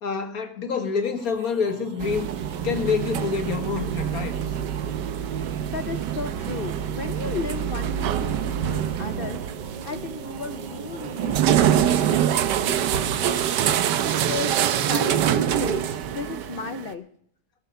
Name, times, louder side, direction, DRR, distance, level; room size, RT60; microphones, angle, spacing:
voice 1, 0.0-2.3 2.6-4.4, left 5 dB, 60° left, 1.9 m, -27 dB
sound 1, 0.8-16.7, right 5 dB, 40° right, 0.7 m, -42 dB
sound 2, 2.0-16.9, right 10 dB, 85° right, 1.4 m, -25 dB
voice 2, 5.3-13.5 13.7-15.9 16.1-17.1, left 5 dB, 80° left, 0.5 m, -35 dB
18.5 x 8.2 x 5.7 m
omnidirectional pair, 1.8 m